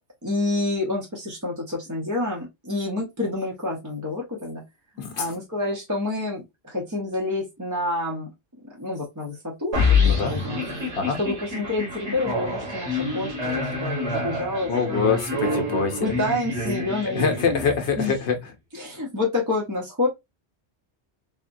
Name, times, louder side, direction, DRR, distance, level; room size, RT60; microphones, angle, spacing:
voice 1, 0.2-4.6 5.1-10.6 11.2-15.6 16.0-17.6 18.0-18.1 18.7-20.1, left 2 dB, 20° right, 0.6 m, -28 dB
voice 2, 5.0-5.3 9.9-10.3 11.0-11.2 14.7-16.1 17.1-18.5, left 5 dB, 80° left, 0.9 m, -25 dB
sound 1, 9.7-18.0, left 3 dB, 85° right, 1.7 m, -27 dB
3.4 x 2.1 x 2.5 m
omnidirectional pair, 1.1 m